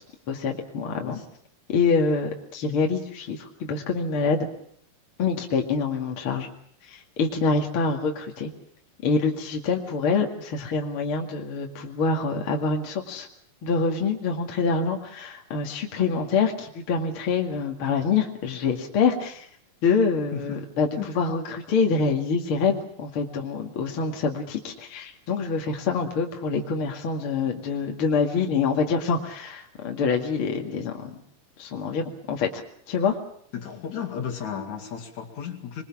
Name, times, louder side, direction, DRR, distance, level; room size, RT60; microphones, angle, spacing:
voice 1, 0.3-1.2 1.7-4.5 5.2-6.5 6.9-8.5 9.0-13.3 13.6-19.5 19.8-20.9 21.1-31.1 31.6-32.6 32.9-33.2, left 4 dB, 45° left, 2 dB, 2.7 m, -26 dB
voice 2, 20.3-21.2 33.5-35.8, left 8 dB, 60° left, 4 dB, 3.5 m, -34 dB
26.0 x 21.5 x 7.3 m, 0.64 s
omnidirectional pair, 3.8 m